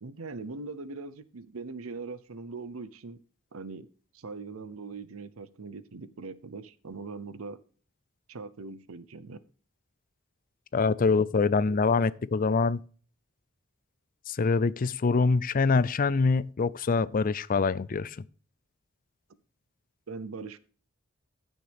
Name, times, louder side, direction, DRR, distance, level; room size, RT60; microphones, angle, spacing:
voice 1, 0.0-3.2 3.5-3.9 4.1-7.6 8.3-9.4 20.1-20.6, right 4 dB, 85° right, 0.7 m, -41 dB
voice 2, 10.7-12.8 14.3-18.2, left 4 dB, 40° left, 0.4 m, -25 dB
15.0 x 6.4 x 3.5 m
head